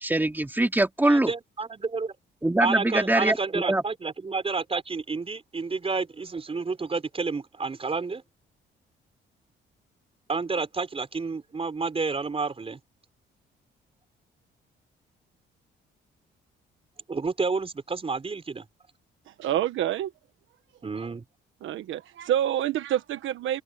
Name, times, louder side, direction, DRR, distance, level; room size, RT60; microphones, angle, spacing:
voice 1, 0.0-1.3 2.4-3.8, right 1 dB, 10° right, 3.1 m, -23 dB
voice 2, 1.0-2.1 2.6-8.2 10.3-12.8 17.1-18.6 20.8-21.2, right 4 dB, 30° right, 4.3 m, -30 dB
voice 3, 19.4-20.1 21.6-23.6, right 11 dB, 80° right, 1.3 m, -27 dB
open air
cardioid pair, 90°, 20 cm